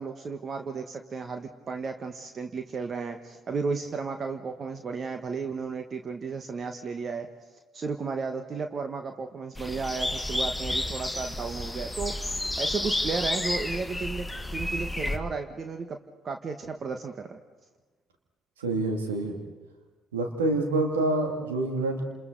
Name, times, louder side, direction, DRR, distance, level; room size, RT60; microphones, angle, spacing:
voice 1, 0.0-7.3 7.7-12.3 12.6-14.3 14.5-16.0 16.2-17.4, right 4 dB, 45° right, 6 dB, 1.3 m, -33 dB
sound 1, 9.6-15.2, left 1 dB, 5° left, 1.7 m, -31 dB
voice 2, 18.6-19.4 20.1-22.0, right 2 dB, 85° right, 3 dB, 2.4 m, -27 dB
29.5 x 28.0 x 4.0 m, 1.3 s
hypercardioid pair, 50°, 0 cm